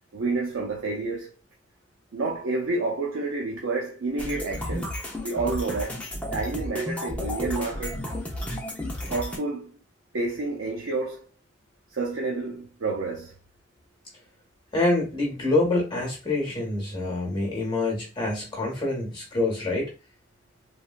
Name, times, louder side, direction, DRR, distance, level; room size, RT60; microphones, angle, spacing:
voice 1, 0.1-1.3 2.1-4.9 5.2-6.0 6.3-8.0 9.1-9.7 10.1-11.2 11.9-13.3, right 3 dB, 75° right, 0.6 m, -29 dB
sound 1, 4.2-9.4, left 1 dB, 5° left, 0.7 m, -33 dB
voice 2, 14.7-19.9, left 2 dB, 25° left, 1.2 m, -26 dB
3.2 x 2.5 x 2.4 m
head